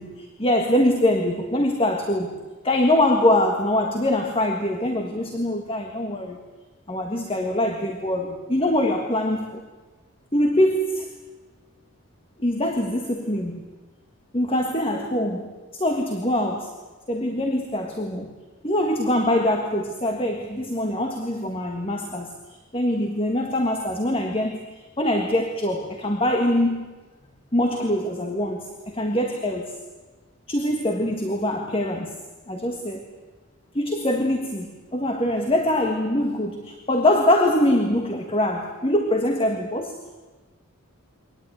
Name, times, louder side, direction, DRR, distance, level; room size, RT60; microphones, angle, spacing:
voice 1, 0.0-2.4 2.6-6.4 6.9-9.6 10.3-11.1 12.4-13.7 14.3-16.7 17.1-18.3 18.6-26.9 27.5-29.7 30.5-32.2 32.5-33.1 33.7-40.0, left 1 dB, 25° left, 4 dB, 1.6 m, -23 dB
24.0 x 18.5 x 9.3 m, 1.3 s
head